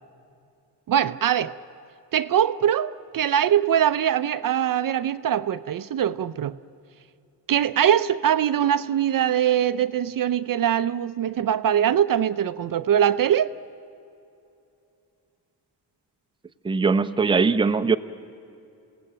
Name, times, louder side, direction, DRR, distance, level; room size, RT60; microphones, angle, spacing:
voice 1, 0.9-1.5 2.1-6.5 7.5-13.5, right 9 dB, 50° right, 0.6 m, -22 dB
voice 2, 16.6-18.0, right 4 dB, 10° right, 0.6 m, -20 dB
28.0 x 17.5 x 8.8 m
cardioid pair, 130°, 43 cm